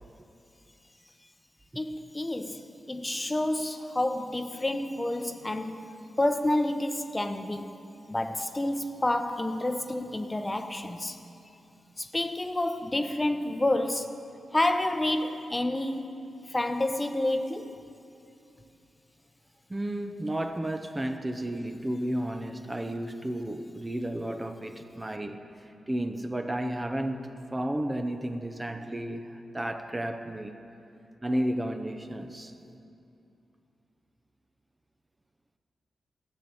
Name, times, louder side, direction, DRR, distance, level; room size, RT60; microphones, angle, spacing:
voice 1, 1.8-5.9 6.2-7.8 8.1-11.2 12.0-14.2 14.5-16.2 16.5-17.8, left 1 dB, 20° left, 0.8 m, -29 dB
voice 2, 19.7-25.5 25.9-30.6 31.2-32.5, right 1 dB, 20° right, 0.7 m, -32 dB
13.0 x 7.5 x 8.8 m
cardioid pair, 70°, 0 cm